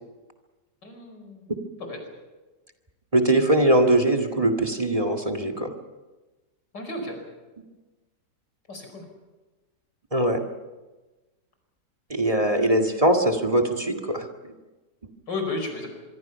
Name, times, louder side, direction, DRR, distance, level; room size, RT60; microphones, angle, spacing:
voice 1, 0.8-1.5 1.8-2.0 6.7-7.2 8.7-9.0 15.3-15.9, left 2 dB, 85° left, 4 dB, 5.8 m, -33 dB
voice 2, 3.1-5.7 10.1-10.4 12.1-14.5, right 1 dB, 20° right, 7 dB, 2.0 m, -21 dB
25.0 x 24.0 x 5.7 m, 1.2 s
omnidirectional pair, 1.8 m